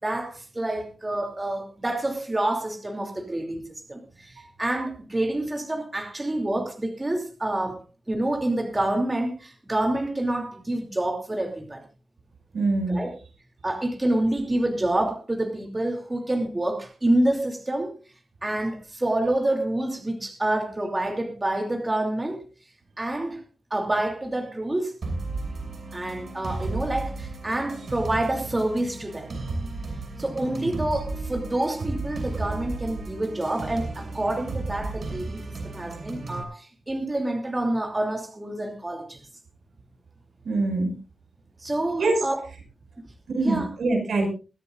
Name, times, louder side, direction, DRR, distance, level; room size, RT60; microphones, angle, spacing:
voice 1, 0.0-3.6 3.9-7.8 8.1-11.8 12.9-13.1 13.6-17.9 18.4-22.4 23.0-23.4 23.7-24.9 25.9-29.3 30.2-39.2 41.6-42.4 43.3-43.7, right 1 dB, 20° right, 3 dB, 2.8 m, -27 dB
voice 2, 12.5-13.0 40.4-40.9 42.0-42.2 43.3-44.3, right 2 dB, 85° right, 2 dB, 5.7 m, -24 dB
sound 1, 25.0-36.4, right 2 dB, 60° right, 6.2 m, -34 dB
22.0 x 13.5 x 2.5 m, 0.32 s
wide cardioid pair, 120°, 0 cm